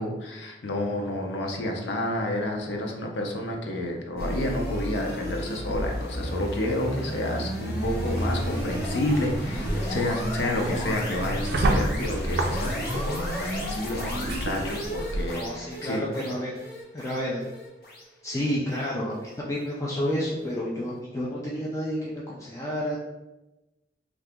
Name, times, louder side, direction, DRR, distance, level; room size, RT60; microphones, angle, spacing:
voice 1, 0.0-16.1, left 1 dB, 80° left, 1 dB, 0.6 m, -30 dB
Positive Vibrations, 4.2-19.3, equal, 55° left, 0.8 m, -32 dB
sound 1, 8.1-15.4, right 1 dB, 65° right, 0.4 m, -31 dB
voice 2, 15.3-16.5 16.9-17.4 18.2-23.0, equal, 15° left, -5 dB, 0.4 m, -30 dB
2.8 x 2.3 x 3.4 m, 1.0 s
head